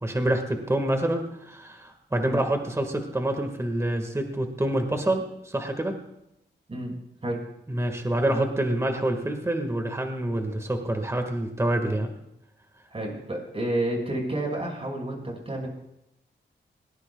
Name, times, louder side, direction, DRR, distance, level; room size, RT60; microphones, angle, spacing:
voice 1, 0.0-5.9 7.7-12.1, right 1 dB, 15° right, 4 dB, 1.8 m, -27 dB
voice 2, 12.9-15.7, right 1 dB, 30° right, 0 dB, 5.7 m, -30 dB
22.0 x 18.5 x 2.4 m, 0.84 s
wide cardioid pair, 100°, 19 cm